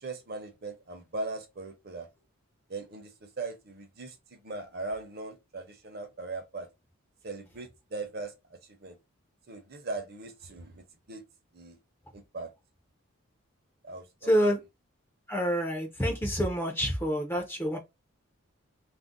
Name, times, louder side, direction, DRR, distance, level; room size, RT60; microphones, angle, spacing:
voice 1, 0.0-2.1 2.7-3.1 3.4-4.1 4.4-6.7 7.2-8.3 8.7-9.0 9.5-11.2 11.5-11.8 12.1-12.5 13.8-14.0, right 3 dB, 45° right, 0.7 m, -39 dB
voice 2, 14.2-14.6 15.3-17.8, equal, 10° left, 0.5 m, -27 dB
2.5 x 2.1 x 3.7 m
head